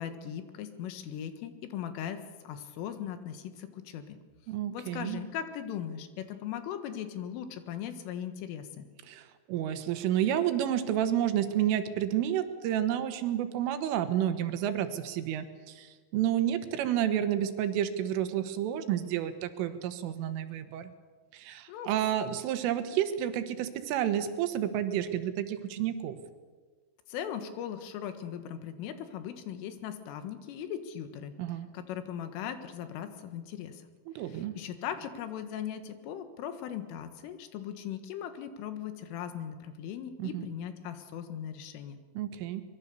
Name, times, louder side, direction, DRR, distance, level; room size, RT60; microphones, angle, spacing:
voice 1, 0.0-4.2 4.7-8.9 21.7-21.9 27.1-31.3 31.7-33.8 34.2-42.0, left 9 dB, 85° left, 9 dB, 4.1 m, -39 dB
voice 2, 4.5-5.2 9.1-20.9 21.3-26.2 31.4-31.7 34.1-34.5 40.2-40.4 42.2-42.6, right 11 dB, 85° right, 9 dB, 3.9 m, -30 dB
24.0 x 22.5 x 6.9 m, 1.5 s
omnidirectional pair, 5.7 m